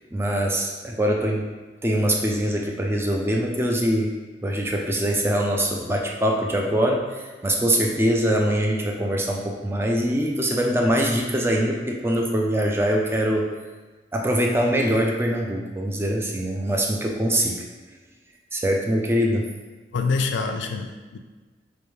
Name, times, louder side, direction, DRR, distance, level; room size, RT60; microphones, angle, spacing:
voice 1, 0.1-1.5 1.8-4.1 4.4-13.5 14.1-17.6 18.5-19.5, equal, 15° right, 0 dB, 0.4 m, -23 dB
voice 2, 19.9-21.2, left 4 dB, 80° left, 6 dB, 0.4 m, -26 dB
5.1 x 2.3 x 3.1 m, 1.3 s
head